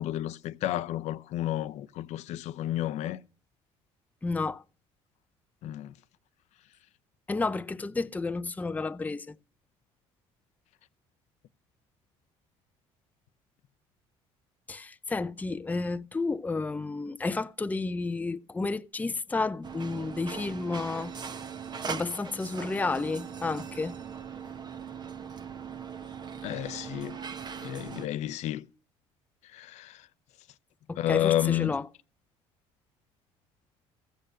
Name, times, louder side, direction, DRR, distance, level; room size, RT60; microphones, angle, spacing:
voice 1, 0.0-3.2 5.6-5.9 26.4-27.2 27.6-28.7 29.5-30.1 31.0-31.8, left 13 dB, 70° left, 0.7 m, -31 dB
voice 2, 4.2-4.6 7.3-9.3 14.7-21.1 21.9-24.0 30.9-31.9, left 3 dB, 15° left, 0.5 m, -31 dB
sound 1, 19.6-28.1, right 6 dB, 35° right, 1.1 m, -40 dB
14.5 x 6.6 x 6.7 m
supercardioid pair, 80°, 12 cm